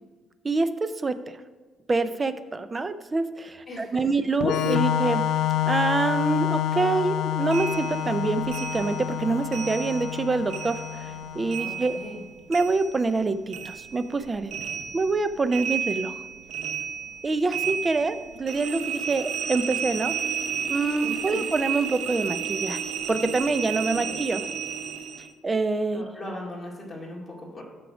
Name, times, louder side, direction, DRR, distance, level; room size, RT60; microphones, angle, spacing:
voice 1, 0.4-1.2 1.9-5.3 5.7-10.8 11.4-12.0 12.5-14.5 14.9-16.1 17.2-20.1 20.7-22.8 23.1-24.4 25.4-26.0, right 3 dB, 20° right, 12 dB, 0.4 m, -26 dB
voice 2, 3.7-4.1 11.6-12.2 21.0-21.4 23.9-24.2 25.9-27.6, left 1 dB, 15° left, -3 dB, 2.1 m, -39 dB
Organ, 4.4-11.9, left 10 dB, 70° left, 0.4 m, -28 dB
sound 1, 7.5-10.2 10.5-13.2 13.5-25.3, right 8 dB, 80° right, 0.8 m, -32 dB
8.5 x 6.1 x 4.9 m, 1.4 s
cardioid pair, 145°, 0 cm